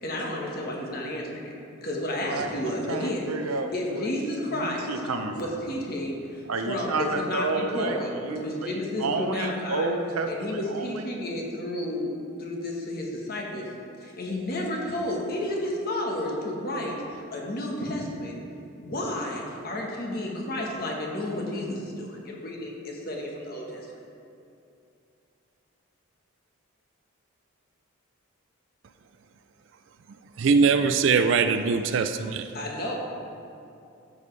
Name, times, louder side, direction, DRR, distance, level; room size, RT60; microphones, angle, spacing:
voice 1, 0.0-1.5 1.8-3.3 3.7-4.9 5.4-9.9 10.3-12.1 12.4-13.7 14.0-18.4 18.8-23.9 32.5-32.9, left 1 dB, 45° left, -1 dB, 1.3 m, -31 dB
voice 2, 2.2-4.1 4.5-5.4 6.5-8.0 8.2-11.1, right 3 dB, 85° right, 5 dB, 0.7 m, -30 dB
voice 3, 30.4-32.5, right 5 dB, 55° right, 9 dB, 0.3 m, -22 dB
12.5 x 7.1 x 3.3 m, 2.6 s
head